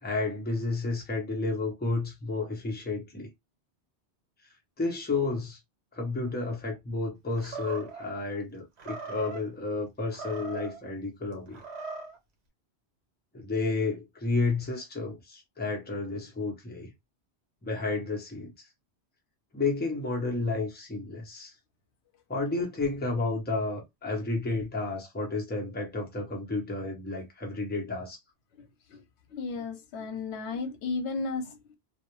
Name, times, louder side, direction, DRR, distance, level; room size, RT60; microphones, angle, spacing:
voice 1, 0.0-3.3 4.8-5.6 5.9-11.6 13.3-16.9 17.6-18.7 19.5-21.5 22.3-28.2, left 3 dB, 10° left, 0.6 m, -31 dB
Animal, 7.4-8.1 8.8-9.4 10.0-10.8 11.5-12.2, right 4 dB, 75° right, 1.0 m, -40 dB
voice 2, 29.3-31.8, left 4 dB, 85° left, 0.9 m, -34 dB
2.3 x 2.0 x 2.9 m
omnidirectional pair, 1.1 m